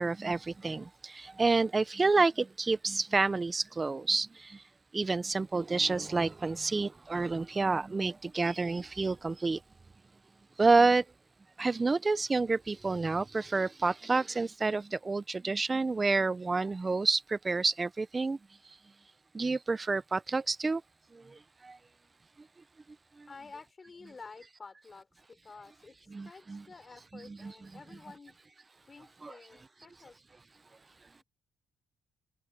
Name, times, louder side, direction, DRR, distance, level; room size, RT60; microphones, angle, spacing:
voice 1, 0.0-4.6 4.9-9.6 10.6-11.0 11.6-18.4 19.3-20.8 21.1-21.8 23.2-23.3 26.1-26.6 27.3-27.5 29.2-29.3, right 3 dB, 25° right, 0.8 m, -29 dB
voice 2, 23.3-28.4 28.9-30.2, left 4 dB, 30° left, 4.9 m, -51 dB
cardioid pair, 90°, 0 cm